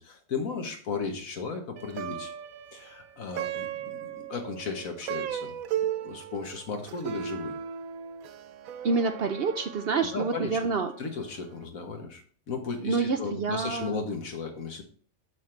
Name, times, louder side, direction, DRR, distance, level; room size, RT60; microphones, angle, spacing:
voice 1, 0.0-2.3 2.7-5.6 6.0-7.6 10.1-10.6 11.0-14.8, left 4 dB, 75° left, 3 dB, 1.7 m, -35 dB
Plucked string instrument, 1.8-11.2, right 9 dB, 80° right, 1.0 m, -37 dB
voice 2, 8.8-10.9 12.8-14.0, right 4 dB, 60° right, 7 dB, 0.7 m, -27 dB
7.4 x 6.5 x 3.2 m, 0.44 s
omnidirectional pair, 1.4 m